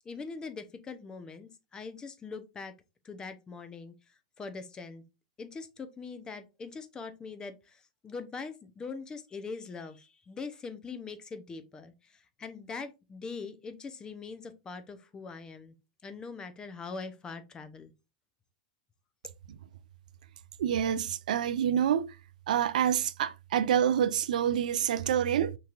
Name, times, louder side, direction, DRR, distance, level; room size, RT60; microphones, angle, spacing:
voice 1, 0.0-2.7 3.0-5.0 5.4-15.8 16.0-17.9, left 4 dB, 20° left, 0.7 m, -42 dB
voice 2, 20.6-22.2 22.5-25.6, right 9 dB, 75° right, 0.4 m, -27 dB
5.7 x 3.1 x 2.4 m
hypercardioid pair, 125°, 4 cm